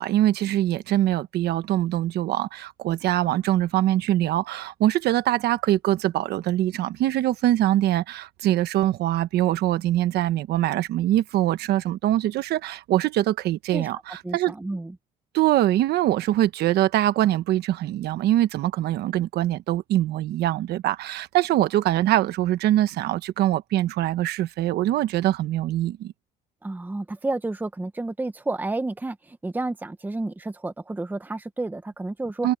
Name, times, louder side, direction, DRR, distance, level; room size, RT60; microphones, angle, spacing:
voice 1, 0.0-14.5 15.3-26.1 32.4-32.5, right 14 dB, 75° right, 1.3 m, -23 dB
voice 2, 14.2-14.9 26.6-32.5, right 2 dB, 10° right, 1.0 m, -30 dB
cardioid pair, 110°, 17 cm